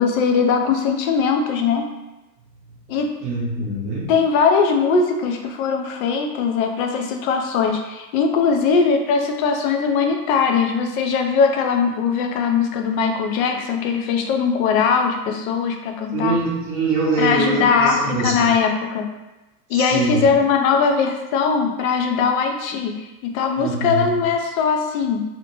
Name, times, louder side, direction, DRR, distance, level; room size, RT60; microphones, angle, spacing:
voice 1, 0.0-1.9 2.9-3.1 3.6-3.7 4.1-16.4 17.2-19.1 19.7-25.2, left 5 dB, 60° left, 4 dB, 0.5 m, -20 dB
voice 2, 3.2-4.1 16.1-18.5 19.7-20.3 23.6-24.2, right 3 dB, 25° right, -4 dB, 0.7 m, -23 dB
2.7 x 2.1 x 2.9 m, 1.0 s
supercardioid pair, 145°, 48 cm